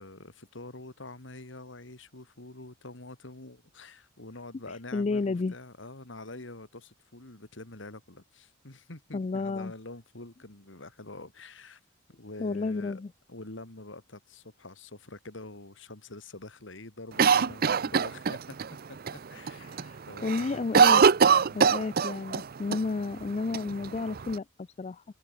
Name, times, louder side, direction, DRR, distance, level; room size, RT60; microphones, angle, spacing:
voice 1, 0.0-11.8 12.2-13.0 13.3-18.6 18.9-19.7 20.1-20.7 21.4-21.7, left 2 dB, 65° left, 2.6 m, -46 dB
voice 2, 4.9-5.5 9.1-9.7 12.4-13.1 19.6-21.0 21.5-25.0, left 3 dB, 35° left, 0.4 m, -31 dB
Cough, 17.2-18.7 19.1-19.2 19.5-19.9 20.2-22.4 22.7-22.8 23.5-24.3, right 6 dB, 50° right, 0.6 m, -22 dB
open air
head